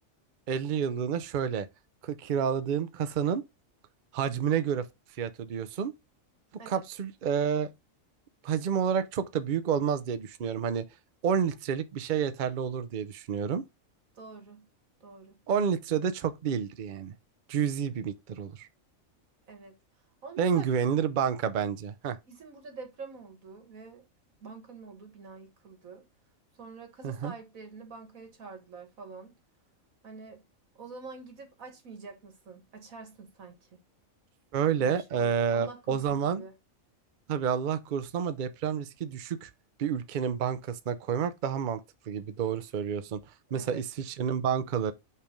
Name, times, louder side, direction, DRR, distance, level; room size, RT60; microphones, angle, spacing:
voice 1, 0.5-1.7 2.0-3.4 4.1-4.8 5.2-5.9 6.7-7.7 8.4-10.8 11.2-13.6 15.5-17.1 17.5-18.7 20.4-22.2 27.0-27.3 34.5-36.4 37.3-39.5 39.8-41.8 42.1-43.2 43.5-44.9, right 7 dB, 50° right, 0.6 m, -29 dB
voice 2, 14.2-14.7 15.0-15.4 19.5-19.8 20.2-20.7 22.3-24.0 24.4-26.0 26.6-29.4 30.0-30.4 30.8-33.8 34.8-36.5 43.5-43.8, right 4 dB, 80° right, 2.0 m, -46 dB
5.5 x 3.4 x 5.1 m
omnidirectional pair, 1.4 m